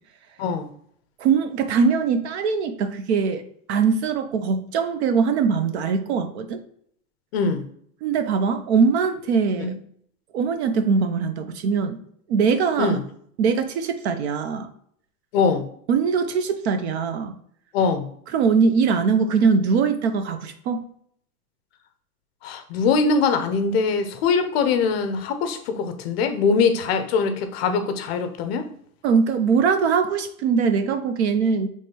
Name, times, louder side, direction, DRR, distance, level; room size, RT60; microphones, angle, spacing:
voice 1, 0.4-0.7 7.3-7.7 9.6-9.7 12.8-13.0 15.3-15.7 17.7-18.1 22.4-28.7, left 5 dB, 45° left, 7 dB, 0.5 m, -22 dB
voice 2, 1.2-3.4 3.7-6.6 8.0-9.7 10.3-12.0 12.3-13.0 13.4-14.7 15.9-17.3 18.3-20.9 29.0-31.7, right 5 dB, 50° right, 9 dB, 0.5 m, -21 dB
5.2 x 3.2 x 2.8 m, 0.65 s
supercardioid pair, 160°, 43 cm